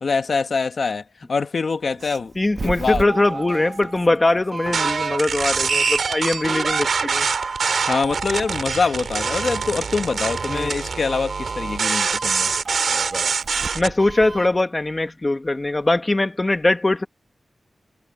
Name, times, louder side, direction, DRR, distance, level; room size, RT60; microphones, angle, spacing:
voice 1, 0.0-1.0 1.3-2.3 2.6-3.1 7.9-12.5, left 4 dB, 65° left, 1.9 m, -24 dB
Doorbell, 1.8-14.6, right 3 dB, 50° right, 2.4 m, -34 dB
voice 2, 2.4-7.3 10.5-10.7 13.8-17.1, left 2 dB, 25° left, 1.6 m, -21 dB
sound 1, 4.7-13.9, right 5 dB, 85° right, 4.4 m, -24 dB
wide cardioid pair, 130°, 0 cm